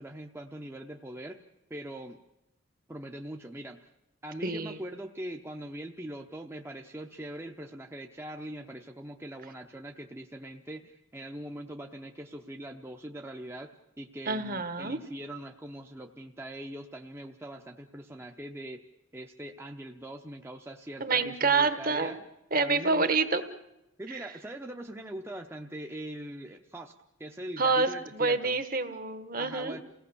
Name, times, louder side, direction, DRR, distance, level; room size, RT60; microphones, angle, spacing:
voice 1, 0.0-1.4 1.7-2.2 2.9-3.8 4.2-13.7 14.0-18.8 19.1-22.2 22.6-23.1 24.0-26.9 27.2-28.6 29.4-29.8, right 1 dB, 10° right, 3 dB, 0.8 m, -42 dB
voice 2, 4.4-4.8 14.3-15.0 21.0-22.2 22.5-23.4 24.1-24.2 27.6-29.8, right 4 dB, 45° right, 10 dB, 1.3 m, -27 dB
28.5 x 17.5 x 7.0 m, 0.93 s
head